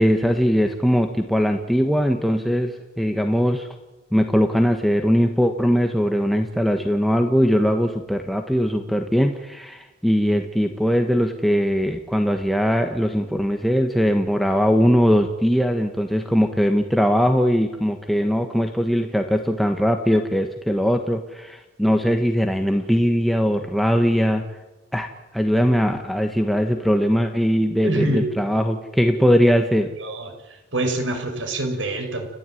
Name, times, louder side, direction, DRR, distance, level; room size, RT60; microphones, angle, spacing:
voice 1, 0.0-3.7 4.1-24.4 24.9-29.9, equal, ahead, 4 dB, 1.4 m, -20 dB
voice 2, 27.8-28.3 30.0-30.3 30.7-32.3, right 2 dB, 90° right, 5 dB, 6.2 m, -25 dB
30.0 x 15.0 x 9.3 m, 1.1 s
head